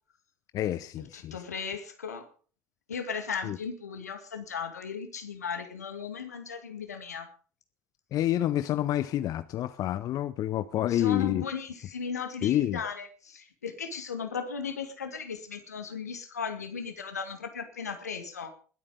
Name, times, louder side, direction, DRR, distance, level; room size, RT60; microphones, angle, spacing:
voice 1, 0.5-1.4 3.4-3.6 8.1-11.4 12.4-12.8, left 12 dB, 45° left, 0.7 m, -28 dB
voice 2, 1.1-2.3 2.9-7.3 10.9-18.5, left 6 dB, 80° left, 2.1 m, -36 dB
21.0 x 8.7 x 5.1 m
figure-of-eight pair, 65°, 9 cm